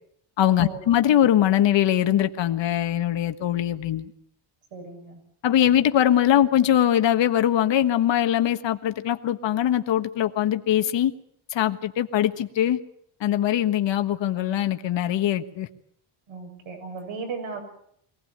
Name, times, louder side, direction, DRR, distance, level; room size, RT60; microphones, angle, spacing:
voice 1, 0.4-4.1 5.4-11.1 11.5-12.8 13.2-15.7, left 11 dB, 60° left, 8 dB, 1.5 m, -22 dB
voice 2, 4.7-5.2 16.3-17.6, right 5 dB, 65° right, 4 dB, 7.3 m, -36 dB
23.5 x 18.0 x 8.8 m, 0.69 s
cardioid pair, 140°, 50 cm